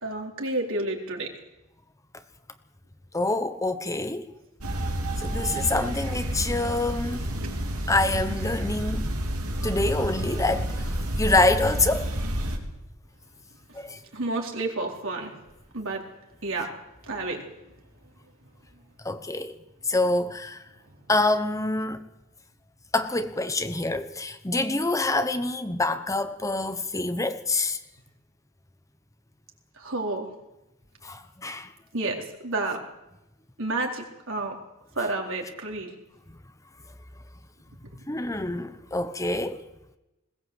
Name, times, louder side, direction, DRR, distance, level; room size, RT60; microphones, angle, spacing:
voice 1, 0.0-1.3 7.3-7.5 13.7-13.8 14.1-15.3 15.7-16.0 16.4-16.7 17.1-17.4 29.8-30.3 31.9-32.8 33.6-34.6 35.0-35.9, right 2 dB, 65° right, 4.1 m, -30 dB
voice 2, 3.1-4.3 5.2-7.3 7.9-9.1 9.6-10.8 11.2-12.1 13.7-14.0 19.0-19.6 19.8-20.6 21.1-22.0 22.9-27.8 31.0-31.7 38.1-39.6, left 2 dB, 15° left, 1.0 m, -26 dB
sound 1, 4.6-12.6, right 1 dB, 80° right, 3.4 m, -29 dB
21.0 x 18.0 x 8.0 m
head